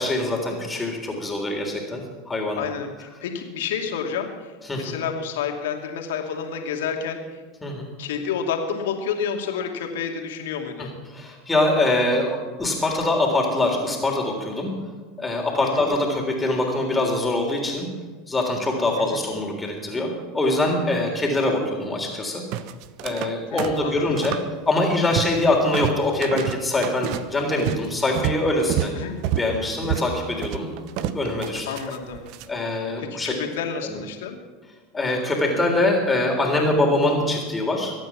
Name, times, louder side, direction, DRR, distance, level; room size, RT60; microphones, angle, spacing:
voice 1, 0.0-2.7 4.6-5.0 7.6-7.9 10.8-14.7 15.2-17.9 18.3-22.4 23.0-24.4 24.7-28.9 29.3-30.7 31.1-31.7 32.5-33.4 33.9-34.0 34.9-37.9, left 2 dB, 15° left, 0 dB, 3.6 m, -23 dB
voice 2, 2.6-7.4 8.0-10.9 15.6-15.9 19.1-19.3 23.5-24.2 28.9-29.2 31.7-32.2 33.0-34.4, left 7 dB, 70° left, 3 dB, 2.5 m, -30 dB
sound 1, 22.5-23.3 23.6-24.5 24.8-25.4 25.7-32.5, right 11 dB, 55° right, 0.9 m, -29 dB
23.5 x 9.3 x 6.1 m, 1.4 s
hypercardioid pair, 85°, 0 cm